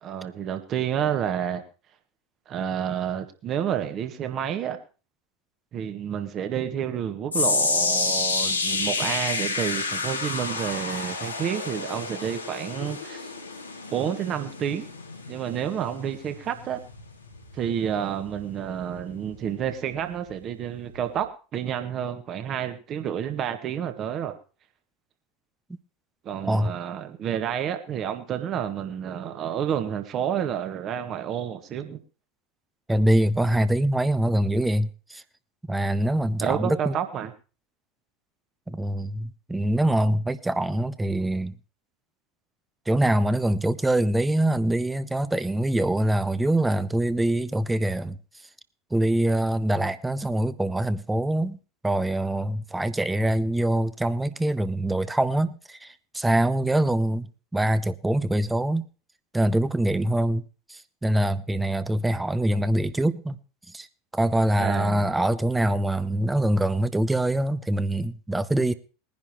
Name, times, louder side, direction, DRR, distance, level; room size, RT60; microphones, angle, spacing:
voice 1, 0.0-1.6 2.5-4.8 5.7-13.3 13.9-14.9 15.3-16.8 17.5-24.4 26.2-32.0 36.4-37.3 64.6-65.3, right 9 dB, 40° right, 1.7 m, -29 dB
sound 1, 7.3-19.6 19.9-20.3 20.9-21.0, left 4 dB, 85° left, 1.9 m, -30 dB
voice 2, 32.9-35.2 35.7-37.0 38.7-41.5 42.9-48.2 48.9-51.6 51.8-57.3 57.5-58.8 59.3-60.4 60.7-63.4 63.7-63.9 64.1-68.7, right 1 dB, 10° right, 0.8 m, -24 dB
20.5 x 10.5 x 3.0 m
figure-of-eight pair, 80°, 0 cm